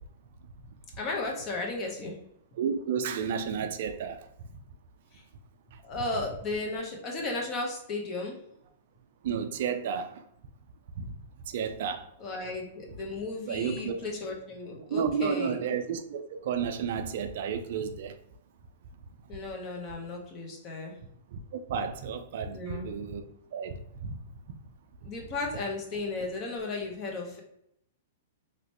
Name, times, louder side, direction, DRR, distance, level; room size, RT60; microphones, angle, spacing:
voice 1, 1.0-2.2 5.1-5.2 5.8-8.4 12.2-15.6 19.3-21.0 22.5-22.9 25.0-27.4, left 3 dB, 35° left, 1.0 m, -35 dB
voice 2, 2.6-4.3 9.2-10.2 11.0-11.1 11.5-12.1 13.5-14.0 14.9-18.1 21.3-23.3 23.5-24.2, right 6 dB, 60° right, 0.4 m, -32 dB
3.2 x 2.9 x 2.9 m
hypercardioid pair, 125°, 0 cm